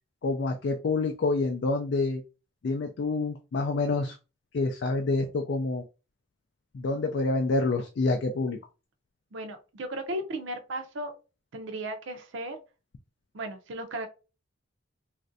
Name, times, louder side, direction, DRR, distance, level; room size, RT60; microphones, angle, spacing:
voice 1, 0.2-2.2 2.6-4.2 4.5-5.8 6.7-8.6, left 3 dB, 55° left, 4 dB, 0.3 m, -27 dB
voice 2, 9.3-11.1 11.5-12.6 13.3-14.1, right 1 dB, 65° right, 6 dB, 0.5 m, -35 dB
3.1 x 2.5 x 2.5 m, 0.31 s
head